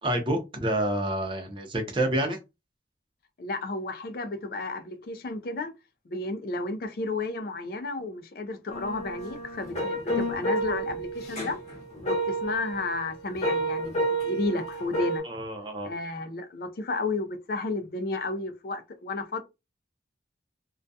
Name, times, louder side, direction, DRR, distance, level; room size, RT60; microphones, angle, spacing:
voice 1, 0.0-2.4 15.2-15.9, right 1 dB, 30° right, 0.6 m, -28 dB
voice 2, 3.4-5.7 6.1-11.6 12.0-15.3 15.8-19.4, left 3 dB, 55° left, 0.4 m, -32 dB
sound 1, 8.7-15.2, right 1 dB, 40° left, 0.8 m, -30 dB
2.3 x 2.2 x 2.6 m
head